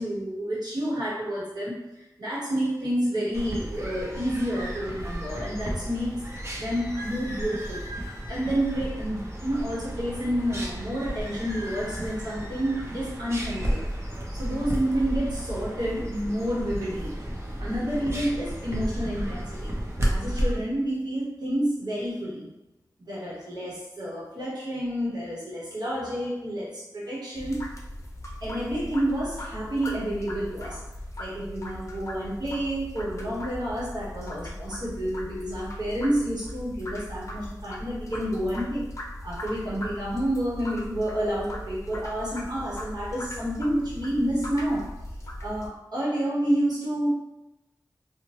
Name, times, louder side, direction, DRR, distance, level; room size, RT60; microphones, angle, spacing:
voice 1, 0.0-7.8 8.3-13.9 14.3-17.2 17.6-19.7 20.1-22.5 23.0-27.7 28.4-30.9 31.2-38.9 39.2-45.0 45.4-47.1, equal, 75° right, -7 dB, 0.9 m, -29 dB
sound 1, 3.3-20.5, equal, 40° right, 0.6 m, -33 dB
sound 2, 27.4-45.7, left 1 dB, 45° left, 0.5 m, -39 dB
2.8 x 2.1 x 3.1 m, 0.95 s
wide cardioid pair, 100°, 7 cm